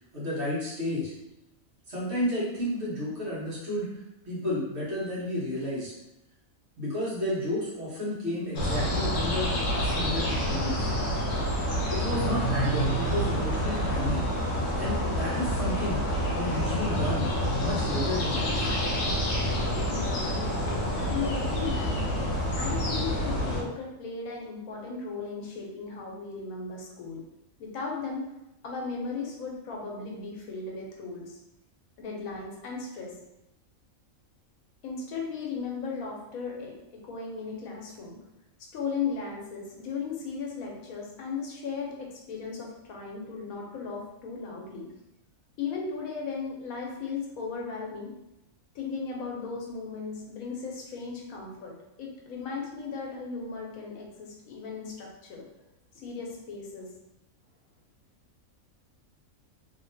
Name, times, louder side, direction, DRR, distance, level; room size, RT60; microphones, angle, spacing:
voice 1, 0.1-1.1 1.9-3.9 4.2-5.9 6.8-10.9 11.9-14.3 14.7-16.0 16.3-17.3 17.6-18.7, left 1 dB, 55° right, -8 dB, 1.4 m, -31 dB
sound 1, 8.5-23.6, equal, 60° left, 1.0 m, -28 dB
voice 2, 19.9-22.3 22.6-27.2 27.6-28.2 28.6-31.4 32.0-33.1 34.8-38.2 38.7-44.9 45.6-48.1 48.7-55.4 56.0-56.9, left 5 dB, 85° left, -1 dB, 1.1 m, -36 dB
2.9 x 2.8 x 2.6 m, 0.89 s
omnidirectional pair, 1.4 m